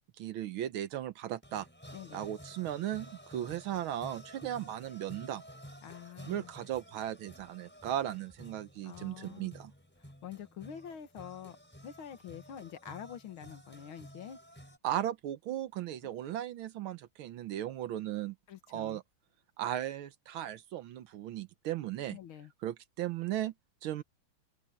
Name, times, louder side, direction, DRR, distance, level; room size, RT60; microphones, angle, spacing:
voice 1, 0.2-1.7 2.1-5.4 6.3-9.7 14.8-18.3 18.7-19.0 19.6-22.2 22.6-23.5 23.8-24.0, right 12 dB, 80° right, 1.7 m, -36 dB
sound 1, 1.4-14.8, equal, 5° left, 4.5 m, -53 dB
voice 2, 1.9-2.3 5.8-6.5 8.8-9.5 10.2-11.6 11.8-14.4 18.5-19.0 22.1-22.5, left 9 dB, 80° left, 2.2 m, -46 dB
omnidirectional pair, 2.2 m